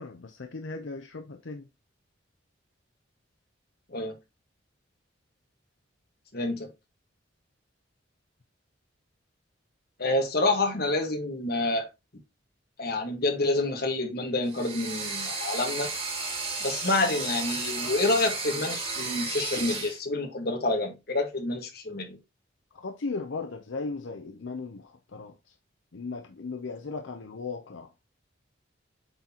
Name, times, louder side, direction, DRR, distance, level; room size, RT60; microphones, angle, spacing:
voice 1, 0.0-1.7 22.7-25.5 25.9-27.9, left 4 dB, 75° left, 0.7 m, -37 dB
voice 2, 6.3-6.7 10.0-11.9 12.8-15.9 16.6-22.2, left 2 dB, 50° left, 1.5 m, -28 dB
sound 1, 14.5-20.0, right 3 dB, 30° right, 2.1 m, -33 dB
7.8 x 4.1 x 2.9 m
head